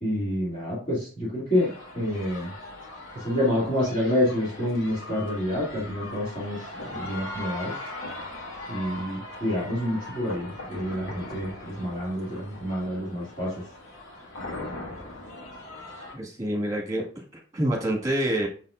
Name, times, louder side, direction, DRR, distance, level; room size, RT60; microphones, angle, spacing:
voice 1, 0.0-1.7 1.9-2.5 3.1-7.8 8.7-13.5, left 1 dB, 35° left, -9 dB, 2.6 m, -28 dB
sound 1, 1.5-16.1, left 2 dB, 85° left, 1.8 m, -40 dB
voice 2, 16.1-17.2 17.5-18.5, right 1 dB, 20° right, -1 dB, 1.7 m, -27 dB
6.8 x 5.7 x 2.5 m, 0.41 s
head